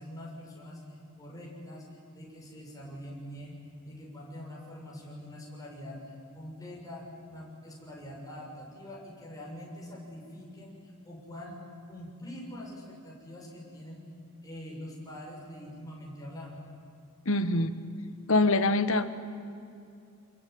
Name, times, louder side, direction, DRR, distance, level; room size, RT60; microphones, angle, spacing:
voice 1, 0.0-11.5 11.9-14.0 14.4-16.6, left 1 dB, 15° left, -3 dB, 6.7 m, -44 dB
voice 2, 17.2-17.7 18.3-19.1, left 2 dB, 65° left, 11 dB, 1.3 m, -24 dB
26.5 x 22.0 x 9.5 m, 2.5 s
head